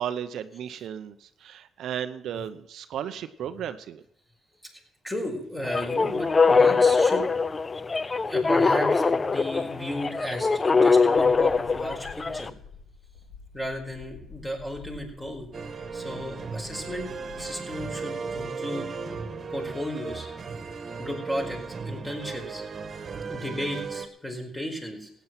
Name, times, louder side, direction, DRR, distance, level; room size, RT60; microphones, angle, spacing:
voice 1, 0.0-4.0, right 9 dB, 75° right, 10 dB, 0.8 m, -34 dB
voice 2, 4.7-7.3 8.2-12.5 13.5-15.5 15.9-17.1 17.4-18.9 19.5-20.3 21.0-22.7 23.3-25.1, equal, 10° left, 2 dB, 4.7 m, -34 dB
sound 1, 5.6-12.5, left 4 dB, 30° left, 0.6 m, -22 dB
sound 2, 11.1-17.6, left 5 dB, 80° left, 3.5 m, -48 dB
sound 3, 15.5-24.1, right 5 dB, 45° right, 1.8 m, -36 dB
15.5 x 9.5 x 6.0 m, 0.76 s
cardioid pair, 90°, 0 cm